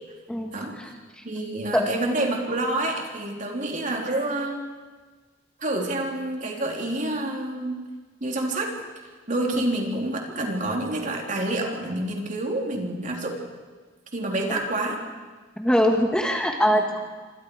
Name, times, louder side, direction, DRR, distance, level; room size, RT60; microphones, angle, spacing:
voice 1, 1.2-4.6 5.6-7.9 8.2-8.7 9.0-13.4 14.1-15.0, right 1 dB, 40° right, 0 dB, 3.5 m, -28 dB
voice 2, 15.6-17.0, equal, 5° left, 2 dB, 1.3 m, -22 dB
27.0 x 25.5 x 4.8 m, 1.4 s
head